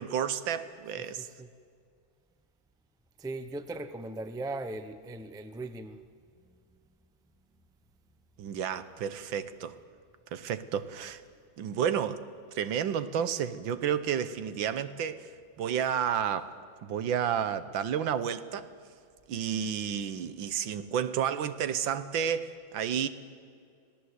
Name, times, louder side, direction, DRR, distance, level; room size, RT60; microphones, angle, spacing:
voice 1, 0.0-1.3 8.4-9.8 10.3-11.2 11.6-15.3 15.6-16.6 16.8-18.7 19.3-23.1, right 8 dB, 85° right, 1.7 m, -31 dB
voice 2, 1.0-1.5 3.2-6.0 6.4-6.8, right 2 dB, 5° right, 0.3 m, -39 dB
26.0 x 17.5 x 8.1 m
omnidirectional pair, 2.1 m